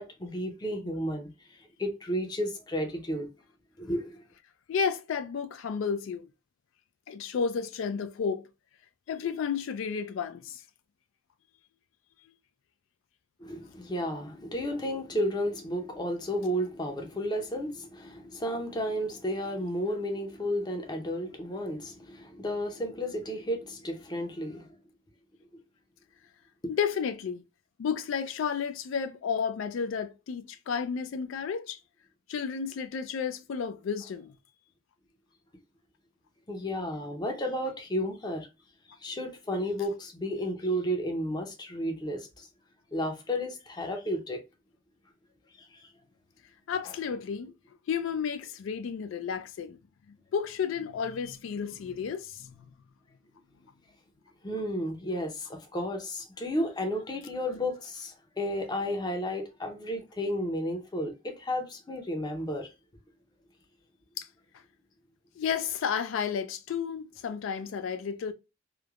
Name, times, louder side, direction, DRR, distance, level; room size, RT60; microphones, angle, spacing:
voice 1, 0.0-3.3 3.8-4.2 13.4-24.8 25.5-25.6 36.5-38.5 39.0-42.5 42.9-44.4 45.5-45.9 54.4-62.7, equal, 20° left, 0.5 m, -32 dB
voice 2, 4.7-6.3 7.1-8.5 9.1-10.6 26.7-27.4 27.8-31.8 32.3-34.3 46.7-47.5 47.9-49.8 50.1-52.6 64.2-64.3 65.4-68.3, left 6 dB, 85° left, 0.3 m, -32 dB
3.1 x 2.1 x 2.3 m
head